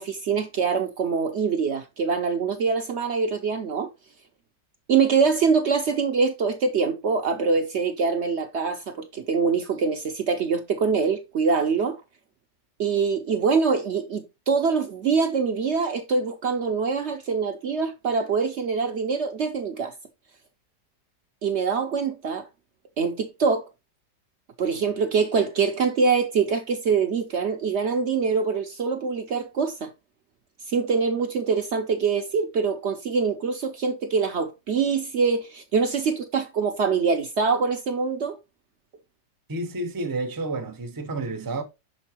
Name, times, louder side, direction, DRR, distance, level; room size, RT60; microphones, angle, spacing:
voice 1, 0.0-3.9 4.9-12.0 12.8-19.9 21.4-22.5 23.0-23.7 24.6-29.9 30.7-38.4, right 5 dB, 65° right, 0.6 m, -24 dB
voice 2, 39.5-41.6, right 2 dB, 35° right, 0.3 m, -30 dB
6.5 x 5.3 x 2.9 m
omnidirectional pair, 1.9 m